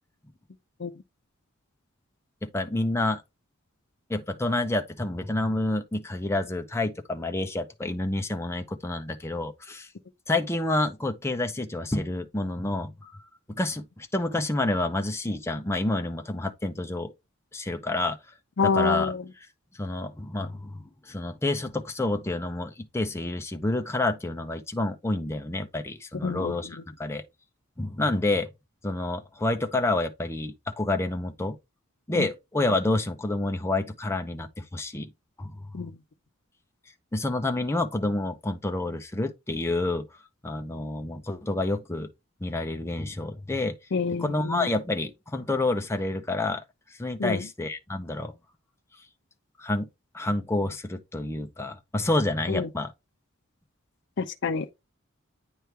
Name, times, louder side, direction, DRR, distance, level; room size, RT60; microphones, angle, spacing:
voice 1, 2.4-3.2 4.1-9.9 10.3-13.1 13.5-17.1 17.5-18.2 18.6-19.1 19.7-27.2 27.8-28.5 28.8-31.6 32.1-35.1 35.4-35.7 37.1-40.1 40.4-42.1 42.4-43.8 44.2-46.6 46.9-48.3 49.6-49.9 50.1-52.9, left 2 dB, 10° left, 0.6 m, -28 dB
voice 2, 18.6-19.2 26.2-26.6 32.2-32.3 35.7-35.9 43.9-44.7 47.2-47.4 52.5-52.7 54.2-54.7, left 4 dB, 55° left, 0.5 m, -27 dB
9.2 x 3.1 x 3.3 m
head